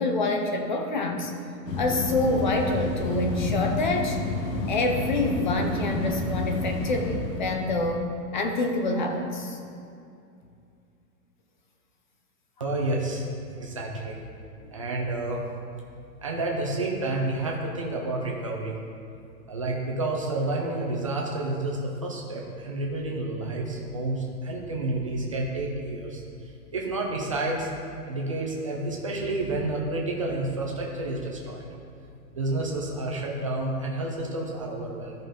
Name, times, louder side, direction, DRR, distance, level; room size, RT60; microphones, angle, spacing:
voice 1, 0.0-1.3 1.8-4.2 4.7-9.6, left 2 dB, 30° left, 3 dB, 0.6 m, -27 dB
sound 1, 1.7-7.9, left 2 dB, 90° left, 1.5 m, -30 dB
voice 2, 12.6-14.2 14.7-15.4 16.2-18.7 19.5-26.2 26.7-27.7 28.1-31.7 32.3-35.1, right 2 dB, 20° right, -2 dB, 0.5 m, -30 dB
13.0 x 5.2 x 3.8 m, 2.5 s
hypercardioid pair, 175°, 48 cm